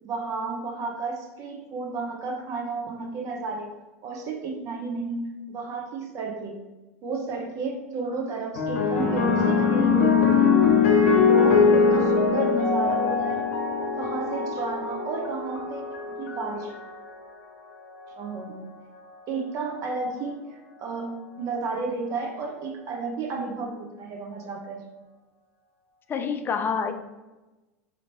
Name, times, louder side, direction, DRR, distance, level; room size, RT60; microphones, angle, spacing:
voice 1, 0.0-3.8 4.0-6.6 7.0-10.5 11.0-13.4 13.9-16.7 18.2-18.6 19.3-24.8, right 3 dB, 45° right, 2 dB, 0.8 m, -32 dB
sound 1, 8.6-17.1 18.0-18.4, left 5 dB, 75° left, 0.7 m, -22 dB
voice 2, 26.1-26.9, left 6 dB, 25° left, 8 dB, 0.4 m, -27 dB
2.9 x 2.9 x 4.1 m, 1.1 s
hypercardioid pair, 90°, 8 cm